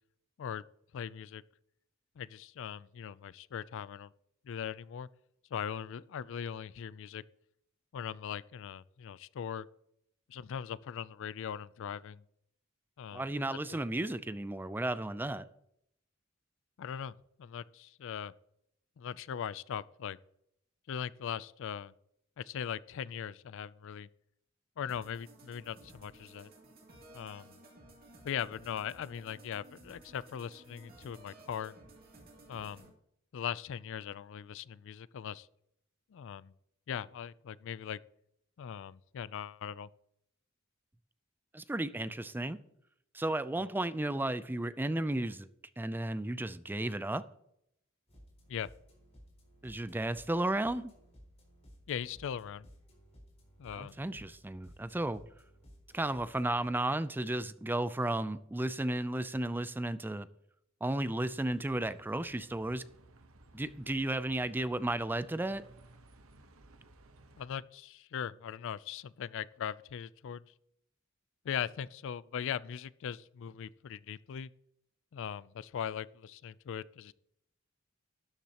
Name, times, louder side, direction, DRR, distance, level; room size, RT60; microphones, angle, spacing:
voice 1, 0.9-1.4 2.2-4.1 4.4-5.1 5.5-7.2 7.9-9.7 10.3-12.2 13.0-13.8 16.8-17.1 17.4-18.3 19.0-20.2 20.9-21.9 22.4-24.1 24.8-26.5 27.1-27.6 28.2-31.7 32.5-32.9 33.3-35.5 36.1-36.5 36.9-38.0 38.6-39.9 48.5-48.7 51.9-52.7 53.6-54.0 67.4-70.4 71.4-74.5 75.1-77.1, left 8 dB, 65° left, 0.4 m, -40 dB
voice 2, 13.1-15.5 41.5-42.6 43.1-45.5 45.8-47.2 49.6-50.9 53.7-55.2 55.9-60.3 60.8-62.8 63.5-65.6, right 1 dB, 10° right, 0.4 m, -33 dB
sound 1, 24.9-32.9, right 1 dB, 45° right, 2.5 m, -56 dB
sound 2, 48.1-56.7, equal, 30° left, 4.2 m, -58 dB
Bus, 61.2-67.5, right 2 dB, 85° right, 1.0 m, -59 dB
12.5 x 10.0 x 2.9 m
head